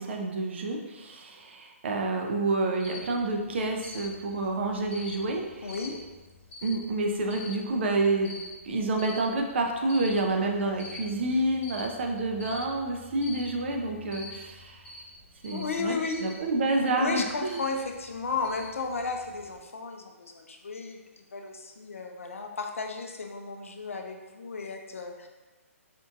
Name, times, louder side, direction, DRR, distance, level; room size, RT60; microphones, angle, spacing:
voice 1, 0.0-5.7 6.6-8.3 8.6-14.8 15.4-15.9 16.2-17.6, right 2 dB, 50° right, 2 dB, 0.5 m, -28 dB
Cricket, 2.8-19.6, left 3 dB, 15° left, 1.0 m, -47 dB
voice 2, 5.6-6.0 15.5-16.3 17.0-25.3, left 4 dB, 65° left, 3 dB, 0.5 m, -34 dB
4.4 x 2.5 x 2.4 m, 1.2 s
figure-of-eight pair, 125°, 8 cm